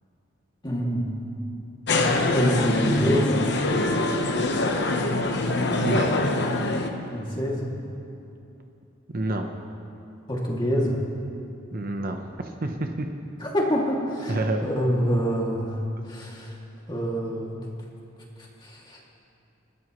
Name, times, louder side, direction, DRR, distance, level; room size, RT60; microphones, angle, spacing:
voice 1, 0.6-1.4 2.3-3.5 7.1-7.7 10.3-11.0 13.4-15.8 16.0-16.6 16.9-17.6 18.4-19.0, equal, 20° left, -3 dB, 2.5 m, -26 dB
sound 1, 1.9-6.9, left 2 dB, 60° left, 1.1 m, -24 dB
voice 2, 5.8-6.2 9.1-9.5 11.7-13.1 14.3-14.7, right 2 dB, 45° right, 4 dB, 0.9 m, -28 dB
29.0 x 12.5 x 3.2 m, 2.7 s
head